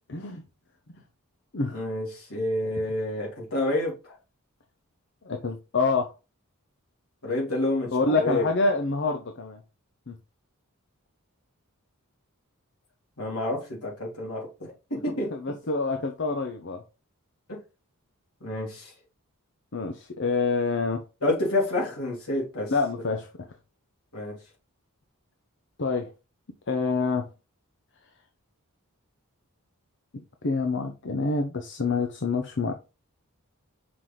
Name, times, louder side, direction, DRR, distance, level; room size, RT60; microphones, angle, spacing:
voice 1, 0.1-0.4 1.5-1.8 5.2-6.1 7.9-9.6 10.1-10.2 15.3-16.8 19.7-21.0 22.7-23.3 25.8-26.1 26.7-27.3 30.4-32.7, left 3 dB, 55° left, 0.8 m, -26 dB
voice 2, 1.7-4.2 7.2-8.5 13.2-15.3 17.5-17.6 18.4-18.9 21.2-22.7 24.1-24.4, left 1 dB, 75° left, 3.6 m, -29 dB
6.0 x 4.7 x 3.9 m
head